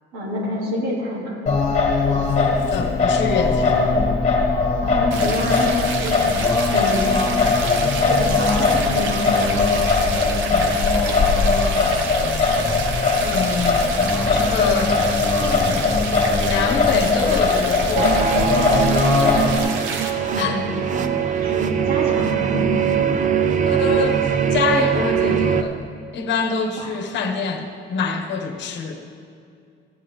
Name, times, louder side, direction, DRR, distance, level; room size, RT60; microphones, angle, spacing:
voice 1, 0.1-1.4 4.8-6.4 6.7-7.3 8.0-9.6 20.3-22.8 26.8-26.9, equal, 90° right, -4 dB, 2.7 m, -27 dB
Singing, 1.5-19.6, left 4 dB, 35° left, 1.8 m, -20 dB
voice 2, 2.7-3.8 10.5-10.8 12.6-12.7 13.2-13.9 14.3-15.0 15.6-15.9 16.4-18.4 18.7-18.9 20.4-20.6 23.6-25.8 26.1-29.0, left 6 dB, 65° left, 5 dB, 1.1 m, -25 dB
sound 1, 5.1-20.1, right 4 dB, 75° right, 1.0 m, -29 dB
sound 2, 18.0-25.6, right 7 dB, 40° right, 0.6 m, -21 dB
15.0 x 8.6 x 3.6 m, 2.4 s
cardioid pair, 115°, 20 cm